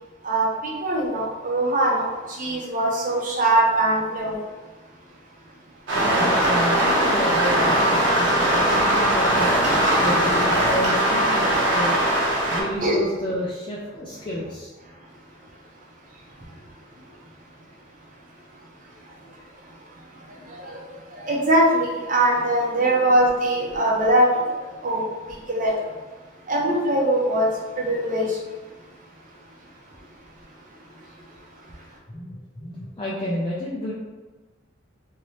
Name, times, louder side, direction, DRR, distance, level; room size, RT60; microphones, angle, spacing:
voice 1, 0.2-4.4 12.8-13.0 20.4-25.9 26.5-27.5 27.8-28.4, right 1 dB, 45° right, 0.7 m, -22 dB
sound 1, 5.9-12.6, right 1 dB, 75° right, 0.9 m, -20 dB
voice 2, 6.0-9.5 10.0-12.0 12.5-14.7 19.5-19.6 32.1-33.9, equal, 25° left, 0.5 m, -30 dB
3.0 x 2.7 x 3.1 m
head